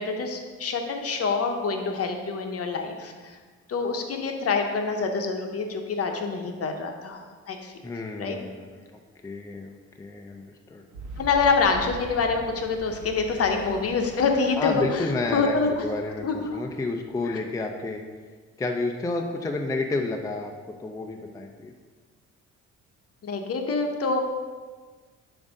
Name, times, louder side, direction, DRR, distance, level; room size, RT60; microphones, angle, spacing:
voice 1, 0.0-3.4 3.7-7.2 7.5-7.7 8.2-8.4 11.2-15.0 15.3-15.7 16.2-16.5 17.3-17.4 23.2-24.2, left 4 dB, 50° left, 4 dB, 0.8 m, -26 dB
voice 2, 7.8-8.8 9.2-10.8 14.6-18.0 18.6-20.5 20.8-21.7, left 3 dB, 10° left, 3 dB, 0.4 m, -30 dB
Boom, 10.9-17.5, right 3 dB, 85° right, 0.9 m, -43 dB
7.0 x 2.7 x 5.1 m, 1.5 s
cardioid pair, 90°, 30 cm